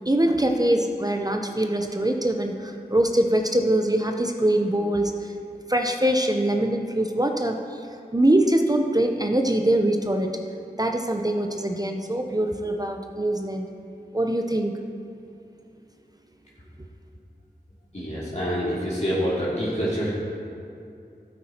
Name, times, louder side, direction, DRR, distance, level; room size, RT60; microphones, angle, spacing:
voice 1, 0.0-5.3 5.7-7.9 8.1-10.3 10.8-13.7 14.1-14.7, right 1 dB, 20° right, 3 dB, 0.7 m, -23 dB
voice 2, 17.9-20.1, equal, 40° left, -9 dB, 2.7 m, -26 dB
12.5 x 8.7 x 4.4 m, 2.6 s
wide cardioid pair, 40°, 17 cm